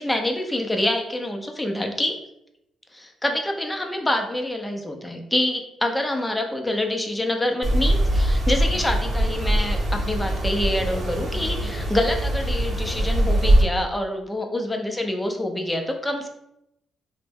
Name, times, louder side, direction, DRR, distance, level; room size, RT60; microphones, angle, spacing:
voice 1, 0.0-2.2 2.9-16.3, left 1 dB, 10° left, 3 dB, 0.5 m, -26 dB
sound 1, 7.6-13.6, right 1 dB, 45° right, 0.8 m, -22 dB
3.3 x 2.1 x 3.4 m, 0.81 s
cardioid pair, 90°, 0 cm